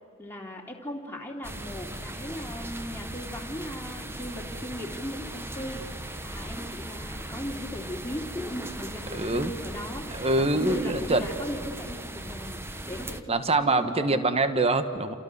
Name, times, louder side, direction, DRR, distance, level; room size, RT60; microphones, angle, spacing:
voice 1, 0.2-14.2, equal, 10° left, -1 dB, 2.9 m, -38 dB
sound 1, 1.4-13.2, right 1 dB, 10° right, 1.0 m, -38 dB
voice 2, 9.2-9.5 10.1-11.3 13.3-15.2, right 2 dB, 25° right, 10 dB, 1.3 m, -24 dB
29.0 x 28.5 x 6.8 m, 2.2 s
head